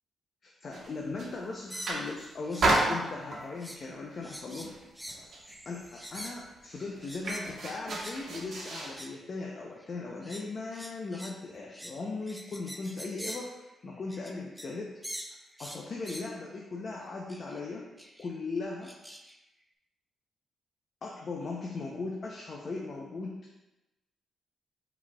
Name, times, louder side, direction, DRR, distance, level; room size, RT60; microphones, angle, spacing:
voice 1, 0.4-4.7 5.7-15.0 15.6-17.9 18.2-18.9 21.0-23.4, left 3 dB, 50° left, -1 dB, 0.6 m, -38 dB
sound 1, 0.7-1.4 1.7-2.2 2.6-3.6 4.1-4.4 4.6-5.5 5.8-5.9 6.1-9.0, right 2 dB, 60° right, 1.2 m, -31 dB
sound 2, 1.7-2.8 3.1-3.9 4.2-7.5 7.9-8.2 8.8-9.2 9.8-14.8 15.0-16.3 17.3-17.6 18.0-18.3 18.8-19.4, equal, ahead, 0.5 m, -45 dB
5.5 x 4.1 x 2.3 m, 1.0 s
cardioid pair, 85°, 0 cm